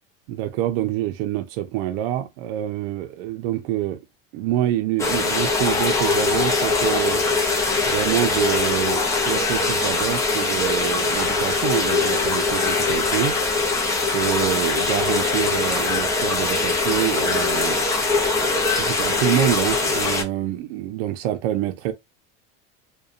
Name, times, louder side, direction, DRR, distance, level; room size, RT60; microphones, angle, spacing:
voice 1, 0.3-4.0 4.3-7.2 7.9-13.4 14.0-17.8 18.8-21.9, right 13 dB, 65° right, 0.5 m, -26 dB
sound 1, 5.0-20.2, left 3 dB, 10° left, 0.5 m, -22 dB
2.6 x 2.2 x 2.4 m
cardioid pair, 155°, 29 cm